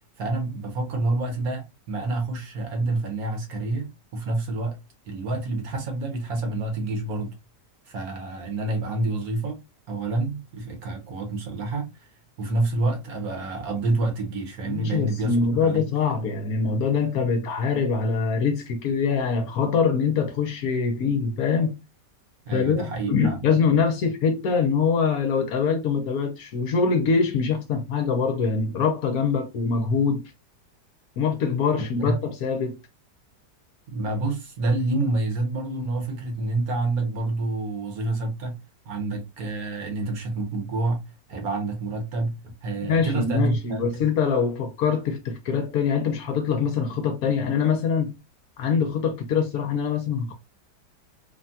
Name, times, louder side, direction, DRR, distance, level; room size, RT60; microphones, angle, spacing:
voice 1, 0.2-4.8 5.1-7.4 7.8-9.6 9.9-12.1 12.4-16.1 22.4-23.5 31.8-32.2 33.9-38.6 38.8-41.0 41.3-44.1, right 2 dB, 65° right, 1.2 m, -28 dB
voice 2, 14.7-21.8 22.5-30.3 31.2-32.8 42.9-48.1 48.6-50.3, left 5 dB, 70° left, 1.0 m, -24 dB
3.5 x 2.2 x 2.6 m
omnidirectional pair, 1.8 m